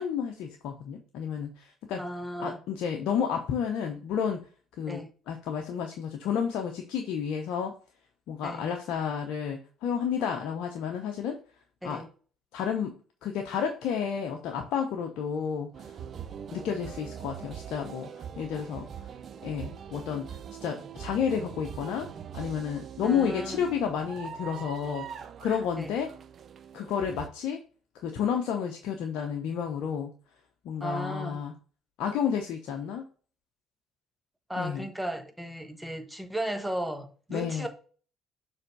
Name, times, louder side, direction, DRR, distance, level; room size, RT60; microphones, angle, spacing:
voice 1, 0.0-2.0 2.4-4.5 4.8-7.7 8.3-11.4 11.8-12.0 12.5-16.0 16.5-18.9 19.4-20.3 20.6-22.1 22.3-26.1 26.7-27.6 27.9-30.1 30.6-31.5 32.0-33.0 34.6-34.9 37.3-37.7, left 7 dB, 65° left, 0.8 m, -31 dB
voice 2, 2.0-2.6 4.9-5.1 8.4-8.7 11.8-12.1 23.0-23.6 25.8-26.0 30.8-31.4 34.5-37.7, right 1 dB, 10° right, 1.2 m, -35 dB
sound 1, 15.7-27.3, right 8 dB, 50° right, 0.6 m, -42 dB
6.7 x 3.5 x 4.1 m
hypercardioid pair, 55°, 0 cm